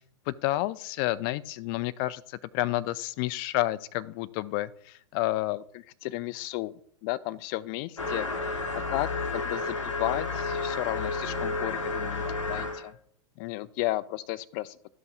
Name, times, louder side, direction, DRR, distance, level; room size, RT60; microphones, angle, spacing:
voice 1, 0.3-6.7 7.0-8.3 8.7-12.9 13.4-14.9, left 17 dB, 45° left, 17 dB, 0.5 m, -32 dB
sound 1, 8.0-12.9, left 3 dB, 90° left, 1.1 m, -31 dB
13.5 x 5.4 x 2.5 m, 0.64 s
figure-of-eight pair, 95°, 16 cm